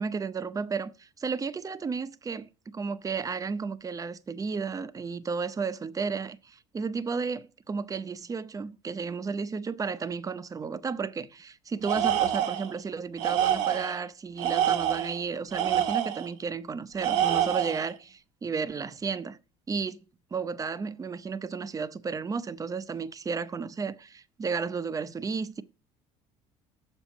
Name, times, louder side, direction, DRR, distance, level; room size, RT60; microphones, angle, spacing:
voice 1, 0.0-19.4 19.7-20.0 20.3-25.6, right 5 dB, 20° right, 0.7 m, -33 dB
Tools, 11.8-12.7 13.2-14.0 14.4-16.3 17.0-17.9, right 10 dB, 80° right, 1.1 m, -27 dB
7.2 x 5.3 x 7.1 m
supercardioid pair, 85°, 15 cm